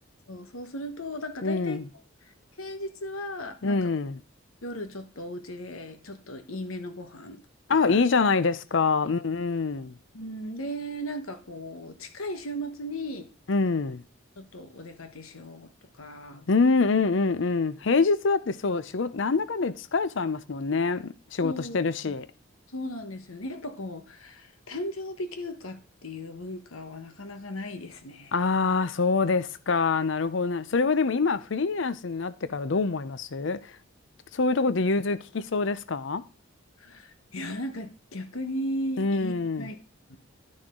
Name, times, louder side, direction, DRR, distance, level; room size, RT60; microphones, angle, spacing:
voice 1, 0.3-1.8 2.6-3.9 4.6-7.4 7.8-8.0 10.1-13.3 14.4-15.7 16.0-16.5 21.4-21.8 22.0-22.1 22.7-28.3 36.8-39.8 40.1-40.2, equal, 90° left, 1.3 m, -36 dB
voice 2, 1.4-1.9 3.6-4.2 7.7-10.0 13.5-14.0 16.5-22.3 28.3-33.7 34.3-36.2 39.0-39.7, left 4 dB, 65° left, 0.6 m, -25 dB
11.5 x 6.3 x 3.7 m
head